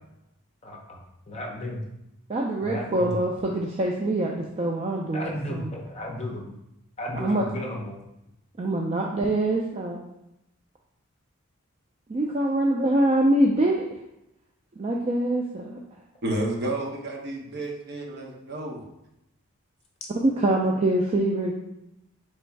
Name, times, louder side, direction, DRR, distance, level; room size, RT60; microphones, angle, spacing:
voice 1, 0.6-1.8 2.6-3.1 5.1-6.5 7.0-8.0, left 1 dB, 30° left, 0 dB, 0.6 m, -34 dB
voice 2, 2.3-5.7 7.1-7.5 8.6-10.0 12.1-13.9 14.8-15.8 20.2-21.5, right 1 dB, 30° right, -1 dB, 0.3 m, -24 dB
voice 3, 16.2-18.8, right 1 dB, 45° right, 0 dB, 0.8 m, -31 dB
3.4 x 3.0 x 4.5 m, 0.87 s
head